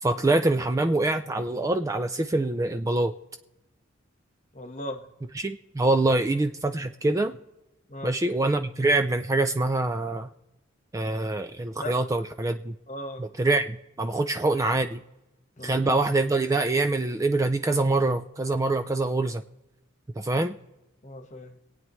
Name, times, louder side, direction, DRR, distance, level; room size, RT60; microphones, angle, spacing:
voice 1, 0.0-3.1 5.4-7.4 8.0-10.3 10.9-12.7 13.2-15.0 15.6-19.4 20.2-20.6, right 2 dB, 15° right, 8 dB, 0.3 m, -25 dB
voice 2, 4.5-5.1 6.1-6.2 7.9-8.1 11.8-12.0 12.9-13.3 14.2-14.3 15.6-15.7 21.0-21.5, left 1 dB, 35° left, 6 dB, 1.3 m, -38 dB
25.5 x 8.8 x 3.1 m, 0.98 s
head